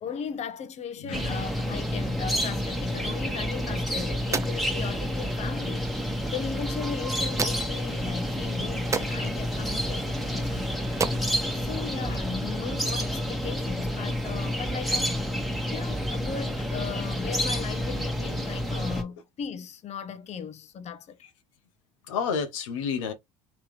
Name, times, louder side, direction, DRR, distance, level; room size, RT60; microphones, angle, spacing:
voice 1, 0.0-11.0 11.6-15.2 15.4-21.2, left 7 dB, 45° left, 0.8 m, -37 dB
voice 2, 1.0-1.4 22.1-23.1, left 6 dB, 80° left, 0.9 m, -30 dB
sound 1, 1.1-19.0, equal, ahead, 1.3 m, -29 dB
sound 2, 3.5-12.5, right 4 dB, 20° right, 0.6 m, -37 dB
3.4 x 3.1 x 3.1 m
hypercardioid pair, 70°, 16 cm